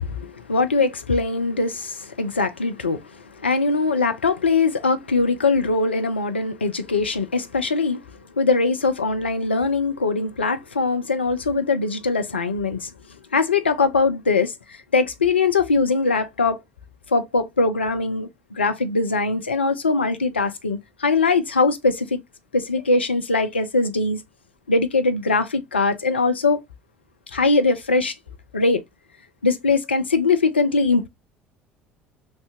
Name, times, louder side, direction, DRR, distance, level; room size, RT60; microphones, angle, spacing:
voice 1, 0.0-3.0 3.4-8.0 8.4-12.9 13.3-14.5 14.9-16.6 17.1-22.2 22.5-24.2 24.7-26.6 27.3-28.1 28.5-28.8 29.4-31.1, left 3 dB, 80° left, 0.5 m, -21 dB
3.2 x 2.7 x 3.4 m
figure-of-eight pair, 60°, 6 cm